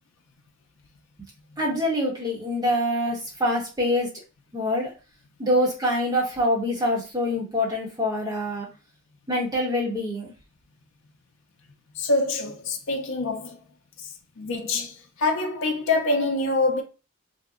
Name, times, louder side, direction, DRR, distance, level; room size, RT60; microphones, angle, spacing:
voice 1, 1.6-4.1 4.5-4.9 5.4-8.7 9.3-10.3, left 1 dB, 20° right, 1.0 m, -25 dB
voice 2, 11.9-13.6 14.0-14.1 14.4-16.8, left 2 dB, 60° left, 0.6 m, -25 dB
2.8 x 2.2 x 3.6 m
head